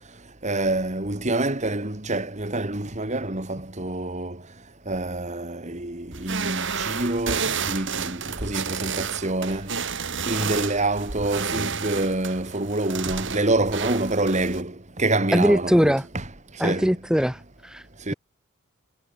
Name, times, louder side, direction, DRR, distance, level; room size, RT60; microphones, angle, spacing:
voice 1, 0.4-4.4 4.9-9.8 10.3-16.2 16.6-17.0 18.1-18.2, right 2 dB, 35° right, 2.7 m, -26 dB
sound 1, 6.1-14.6, right 6 dB, 60° right, 4.4 m, -31 dB
voice 2, 15.3-16.0 16.6-17.8, equal, 5° right, 1.0 m, -21 dB
head